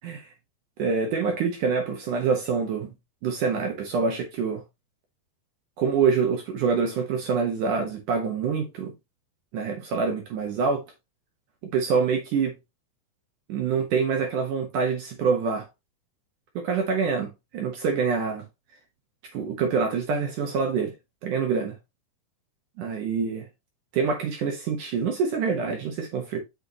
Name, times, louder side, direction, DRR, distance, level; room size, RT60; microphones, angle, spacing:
voice 1, 0.8-2.9 3.2-4.6 5.8-8.9 9.5-10.8 11.7-12.5 13.5-15.7 16.6-18.5 19.3-20.9 21.2-21.7 22.8-23.5 23.9-26.4, right 5 dB, 65° right, 2.4 m, -26 dB
7.0 x 6.6 x 2.9 m
omnidirectional pair, 4.5 m